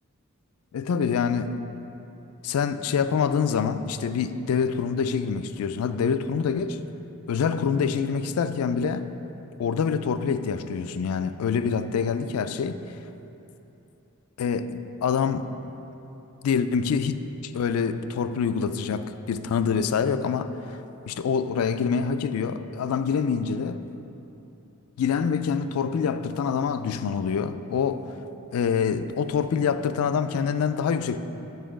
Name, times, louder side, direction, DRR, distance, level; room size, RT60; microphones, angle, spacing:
voice 1, 0.7-1.5 2.4-6.8 7.3-9.1 9.6-12.8 14.4-15.5 16.4-17.2 17.4-20.8 21.1-23.8 25.0-28.1 28.5-31.2, left 6 dB, 85° left, 11 dB, 0.3 m, -26 dB
8.0 x 4.6 x 5.0 m, 2.9 s
head